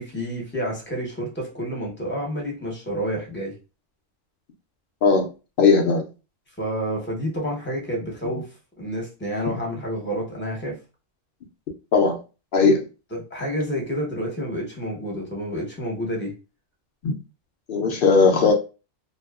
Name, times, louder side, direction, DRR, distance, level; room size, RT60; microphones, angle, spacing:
voice 1, 0.0-3.5 6.6-8.5 8.8-10.8 13.1-16.3, equal, 10° left, 0.7 m, -29 dB
voice 2, 5.0-5.3 5.6-6.0 11.9-12.2 12.5-12.8 17.0-17.1 17.7-18.5, left 4 dB, 65° left, 0.5 m, -18 dB
2.7 x 2.3 x 2.3 m
omnidirectional pair, 1.3 m